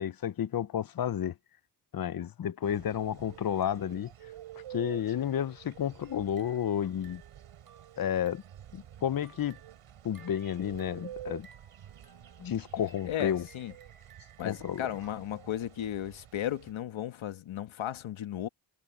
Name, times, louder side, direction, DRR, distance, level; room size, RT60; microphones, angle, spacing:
voice 1, 0.0-1.3 1.9-4.1 4.7-7.2 8.0-8.4 8.7-9.6 10.0-11.5 12.4-13.5 14.4-14.9, left 9 dB, 45° left, 0.8 m, -31 dB
sound 1, 2.6-16.7, right 12 dB, 80° right, 4.1 m, -50 dB
sound 2, 6.0-8.7 9.1-15.2, right 7 dB, 45° right, 3.9 m, -61 dB
voice 2, 13.0-13.7 14.4-18.5, left 11 dB, 70° left, 1.6 m, -35 dB
cardioid pair, 80°, 49 cm